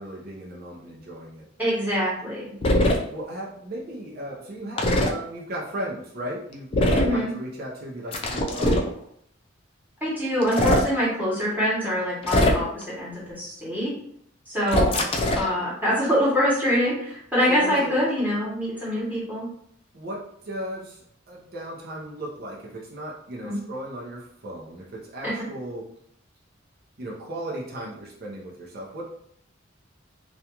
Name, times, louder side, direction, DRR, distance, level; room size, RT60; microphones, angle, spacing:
voice 1, 0.0-1.5 3.1-8.8 14.6-15.0 17.5-17.9 19.9-25.9 27.0-29.0, right 1 dB, 50° right, -3 dB, 0.6 m, -36 dB
voice 2, 1.6-2.5 6.9-7.3 10.0-13.9 14.5-15.0 15.3-19.5 23.4-23.5 25.2-25.3, equal, 10° right, -8 dB, 0.9 m, -25 dB
sound 1, 2.6-3.0 4.8-5.1 6.7-7.2 8.1-8.9 10.4-10.9 12.2-12.8 14.7-15.5, left 1 dB, 30° left, 0.3 m, -21 dB
2.4 x 2.2 x 2.8 m, 0.69 s
head